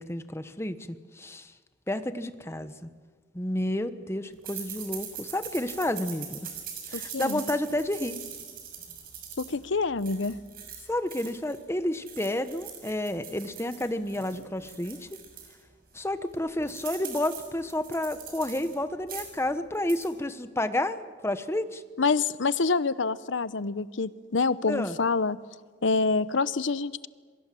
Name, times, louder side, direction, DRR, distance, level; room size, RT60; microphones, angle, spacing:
voice 1, 0.0-1.5 1.9-2.9 3.3-6.4 6.9-8.2 10.9-15.2 15.9-21.8 24.7-25.0, left 1 dB, 15° left, 11 dB, 1.1 m, -30 dB
sound 1, 4.4-11.6 11.9-15.5 16.0-16.1 16.3-18.7 19.0-19.4 19.7-20.1, right 8 dB, 50° right, 6.3 m, -42 dB
voice 2, 6.9-7.4 9.4-10.4 22.0-25.4 25.8-27.1, left 4 dB, 80° left, 16 dB, 0.8 m, -27 dB
27.0 x 23.0 x 7.6 m, 1.5 s
head